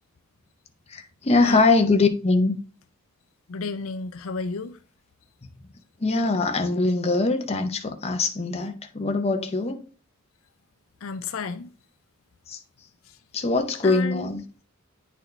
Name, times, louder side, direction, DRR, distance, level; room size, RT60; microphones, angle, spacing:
voice 1, 0.9-2.6 6.0-9.8 12.5-12.6 13.3-14.4, left 3 dB, 30° left, 0.6 m, -22 dB
voice 2, 3.5-4.8 11.0-11.7 13.8-14.3, left 4 dB, 70° left, 0.5 m, -32 dB
9.1 x 4.1 x 3.2 m
head